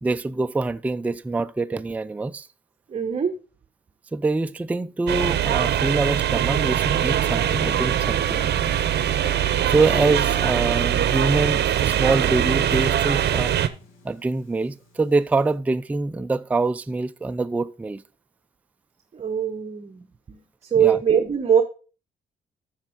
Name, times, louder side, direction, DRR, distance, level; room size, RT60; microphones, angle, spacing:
voice 1, 0.0-2.5 4.1-8.5 9.7-13.5 14.0-18.0 20.8-21.0, right 3 dB, 5° right, 0.3 m, -25 dB
voice 2, 2.9-3.3 19.1-20.4 20.7-21.6, right 8 dB, 30° right, 1.0 m, -22 dB
sound 1, 5.1-13.7, right 10 dB, 55° right, 0.8 m, -22 dB
sound 2, 6.5-15.6, left 3 dB, 85° left, 1.8 m, -45 dB
7.3 x 6.4 x 5.0 m
cardioid pair, 90°, 20 cm